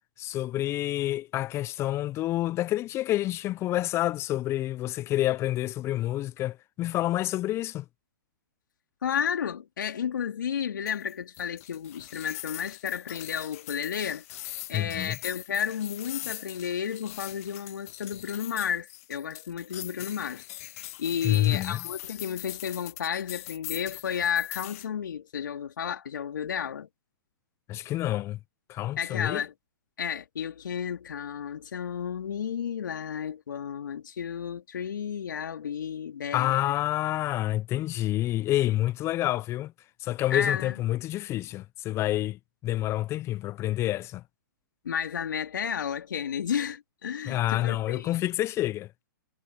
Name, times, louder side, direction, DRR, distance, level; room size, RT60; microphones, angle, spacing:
voice 1, 0.2-7.8 14.7-15.2 21.2-21.9 27.7-28.4 28.7-29.4 36.3-39.7 40.0-44.2 47.3-48.9, left 14 dB, 25° left, 0.8 m, -28 dB
voice 2, 9.0-14.2 14.7-20.4 21.0-26.9 29.0-29.5 30.0-36.7 40.3-40.7 44.8-48.2, left 8 dB, 65° left, 4.0 m, -32 dB
sound 1, 10.9-24.9, left 18 dB, 45° left, 1.0 m, -42 dB
hypercardioid pair, 125°, 11 cm